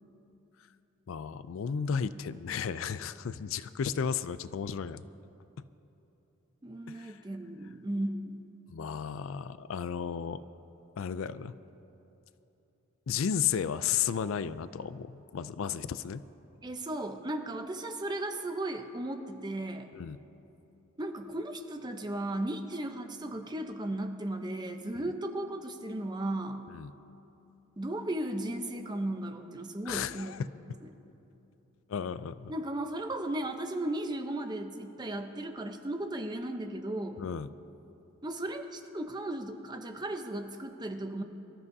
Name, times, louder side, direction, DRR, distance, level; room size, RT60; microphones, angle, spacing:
voice 1, 1.1-5.0 6.9-7.1 8.7-10.4 11.0-11.5 13.1-16.2 19.9-20.2 26.7-26.9 29.9-30.5 31.9-32.5 37.2-37.5, left 7 dB, 70° left, 15 dB, 0.4 m, -33 dB
voice 2, 6.6-8.5 16.6-19.9 21.0-26.7 27.8-30.3 30.7-30.9 32.5-37.2 38.2-41.2, right 1 dB, 20° right, 5 dB, 0.7 m, -36 dB
25.0 x 13.5 x 2.7 m, 3.0 s
head